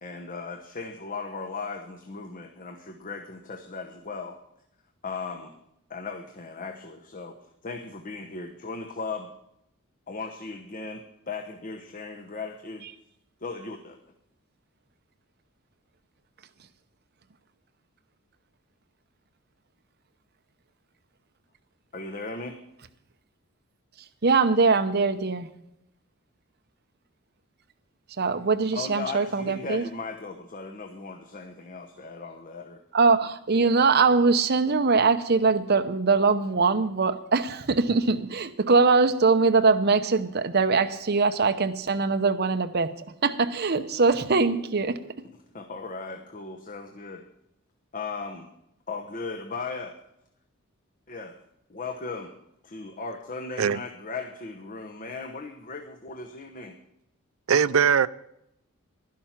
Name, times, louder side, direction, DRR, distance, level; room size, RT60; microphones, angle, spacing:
voice 1, 0.0-4.4 5.0-5.5 5.9-7.3 7.6-9.3 10.1-12.9 13.4-14.0 21.9-22.6 28.7-32.8 45.5-47.2 47.9-48.5 48.9-49.9 51.1-51.4 51.7-52.3 52.6-56.8, left 4 dB, 40° left, 0.9 m, -37 dB
voice 2, 24.2-25.5 28.2-29.9 32.9-45.1, right 4 dB, 50° right, 0.8 m, -22 dB
voice 3, 57.5-58.1, right 7 dB, 65° right, 0.4 m, -20 dB
11.5 x 11.5 x 5.9 m
head